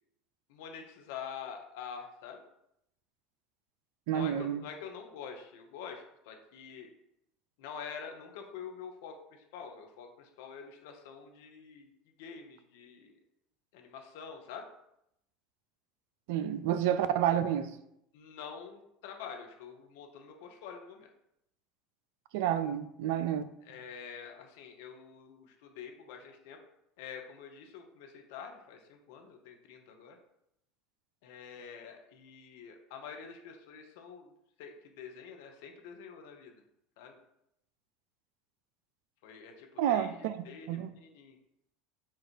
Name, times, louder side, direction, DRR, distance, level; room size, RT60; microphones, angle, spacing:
voice 1, 0.5-2.4 4.1-6.9 7.6-11.9 12.2-13.2 13.7-14.7 18.1-21.1 23.6-26.6 27.0-30.2 31.2-34.3 34.6-36.6 37.0-37.2 39.2-40.1 40.4-41.4, left 6 dB, 65° left, 0.7 m, -46 dB
voice 2, 4.1-4.6 16.3-17.8 22.3-23.4 39.8-40.9, right 10 dB, 65° right, 0.3 m, -30 dB
4.4 x 2.4 x 4.5 m
hypercardioid pair, 75°, 0 cm